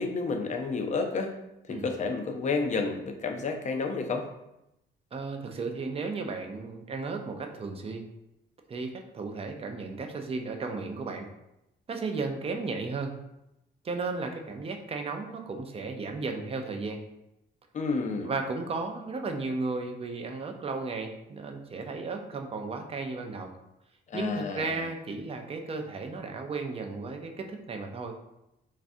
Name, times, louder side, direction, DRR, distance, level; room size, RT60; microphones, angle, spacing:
voice 1, 0.0-1.4 1.7-4.3 17.7-18.3 24.1-24.8, left 4 dB, 35° left, 4 dB, 0.4 m, -30 dB
voice 2, 5.1-8.1 8.7-11.3 11.9-13.1 13.8-17.0 18.2-23.5 24.1-28.1, right 3 dB, 30° right, 4 dB, 0.4 m, -34 dB
3.2 x 2.4 x 2.5 m, 0.87 s
cardioid pair, 90°, 20 cm